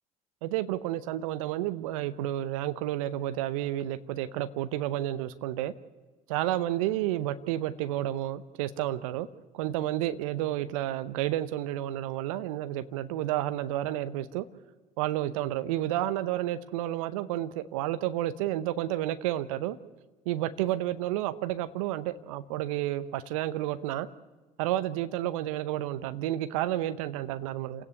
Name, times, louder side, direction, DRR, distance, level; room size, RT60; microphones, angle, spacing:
voice 1, 0.4-5.7 6.3-9.3 9.5-14.5 15.0-19.8 20.3-24.1 24.6-27.8, right 13 dB, 75° right, 12 dB, 0.8 m, -31 dB
29.0 x 10.0 x 9.7 m, 1.3 s
hypercardioid pair, 60°, 17 cm